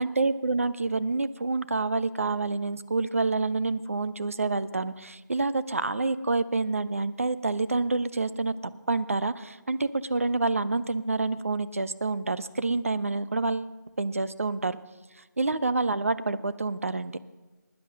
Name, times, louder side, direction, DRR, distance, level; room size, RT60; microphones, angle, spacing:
voice 1, 0.0-8.5 8.9-14.8 15.4-17.2, right 3 dB, 45° right, 15 dB, 0.5 m, -28 dB
11.0 x 9.8 x 6.3 m, 1.3 s
figure-of-eight pair, 175°, 10 cm